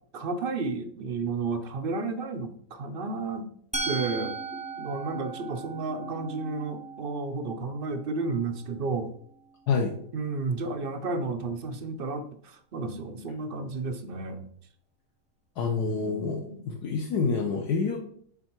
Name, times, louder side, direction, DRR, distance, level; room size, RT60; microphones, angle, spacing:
voice 1, 0.1-3.5 3.8-4.4 4.8-9.1 10.1-14.5 15.7-16.7, right 3 dB, 60° right, 7 dB, 0.6 m, -32 dB
Musical instrument, 3.7-9.6, right 4 dB, 10° right, 0.4 m, -38 dB
voice 2, 15.6-18.0, left 5 dB, 70° left, 1 dB, 1.3 m, -27 dB
7.9 x 3.7 x 4.5 m, 0.62 s
omnidirectional pair, 1.8 m